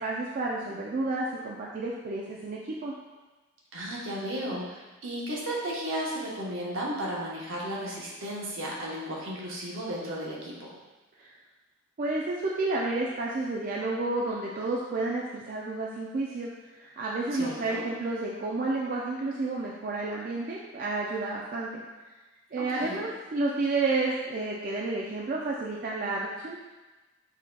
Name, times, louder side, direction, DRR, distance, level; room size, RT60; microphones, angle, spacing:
voice 1, 0.0-2.9 11.2-11.3 12.0-21.8 22.5-26.6, right 2 dB, 40° right, -3 dB, 0.3 m, -31 dB
voice 2, 3.7-10.7 17.3-17.8 22.7-23.0, equal, 75° right, -4 dB, 0.9 m, -34 dB
6.2 x 2.8 x 2.2 m, 1.2 s
head